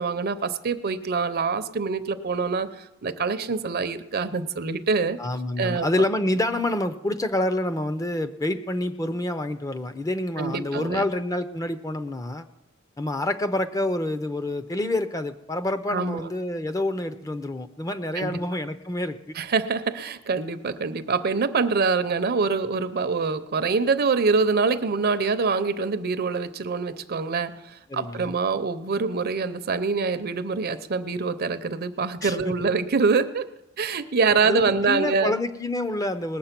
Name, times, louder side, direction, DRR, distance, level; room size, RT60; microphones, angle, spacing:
voice 1, 0.0-5.2 5.6-5.9 10.4-11.1 15.9-16.3 18.1-18.4 19.4-33.5 33.8-35.3, right 4 dB, 50° right, 11 dB, 0.6 m, -25 dB
voice 2, 5.2-12.5 13.0-19.4 27.9-28.3 32.2-32.5 34.4-36.4, left 1 dB, 15° left, 10 dB, 0.6 m, -27 dB
20.0 x 7.3 x 5.9 m, 0.92 s
head